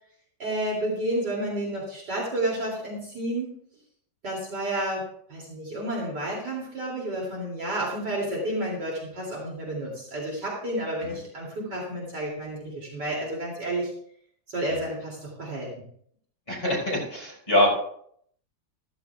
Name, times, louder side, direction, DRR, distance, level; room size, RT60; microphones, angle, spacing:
voice 1, 0.4-3.5 4.2-13.9 14.5-15.7, right 1 dB, 70° right, -4 dB, 3.3 m, -31 dB
voice 2, 16.5-17.7, left 1 dB, 30° left, -2 dB, 4.7 m, -23 dB
15.0 x 14.5 x 2.3 m, 0.64 s
omnidirectional pair, 1.9 m